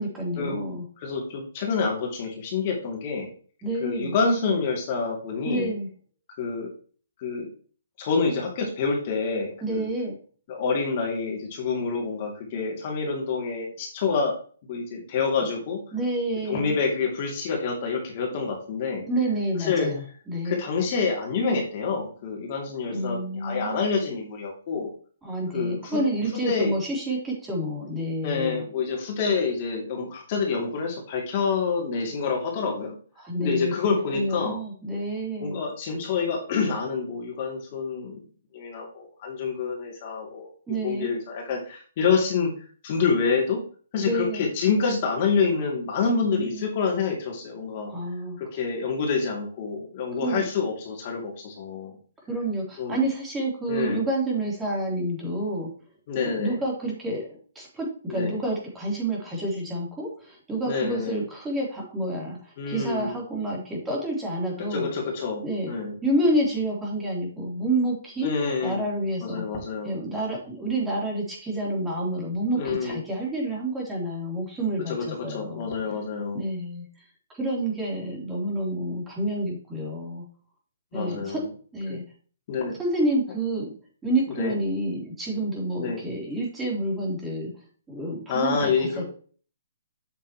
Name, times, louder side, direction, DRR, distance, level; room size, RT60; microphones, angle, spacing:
voice 1, 0.0-0.8 3.6-4.1 5.4-5.9 9.6-10.2 15.9-16.8 19.1-20.6 22.9-23.8 25.2-28.6 33.2-35.6 40.7-41.2 44.0-44.5 46.2-46.8 47.9-48.4 50.2-50.4 52.3-55.7 56.2-64.9 65.4-65.7 66.0-68.3 68.6-69.4 69.8-75.7 76.3-76.9 77.3-80.2 80.9-81.4 81.7-82.0 82.8-83.7 84.0-87.5 87.9-89.0, right 1 dB, 10° right, -3 dB, 3.6 m, -29 dB
voice 2, 1.0-3.3 3.8-5.7 6.4-6.7 7.2-7.5 8.0-9.9 10.5-14.4 14.7-15.8 16.5-19.0 19.6-19.9 20.4-24.9 25.5-26.0 26.3-26.7 28.2-33.0 33.4-34.6 35.4-38.2 38.5-42.5 42.8-43.6 43.9-47.9 48.4-52.0 52.8-53.0 53.7-54.0 56.1-56.6 58.1-58.4 60.7-61.2 62.6-63.2 64.7-65.9 68.2-68.8 69.2-69.9 72.5-73.0 74.9-76.5 80.9-81.5 81.9-82.0 82.5-82.8 84.4-84.5 85.8-86.0 88.3-89.0, left 5 dB, 40° left, 0 dB, 2.7 m, -27 dB
8.3 x 7.4 x 3.1 m, 0.41 s
hypercardioid pair, 155°, 0 cm